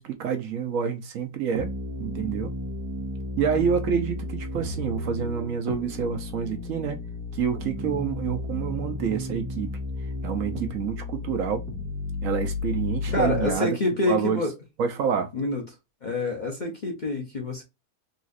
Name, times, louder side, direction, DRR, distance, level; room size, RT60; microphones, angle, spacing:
voice 1, 0.0-1.7 2.0-2.5 3.4-7.0 7.3-9.7 10.2-11.6 12.2-13.8 14.1-14.4 14.8-15.3, right 7 dB, 70° right, 1.0 m, -27 dB
sound 1, 1.6-13.6, left 2 dB, 85° right, 1.3 m, -33 dB
voice 2, 13.1-14.5 15.3-15.6 16.0-17.6, left 2 dB, 40° left, 0.7 m, -27 dB
4.0 x 2.4 x 2.5 m
omnidirectional pair, 1.6 m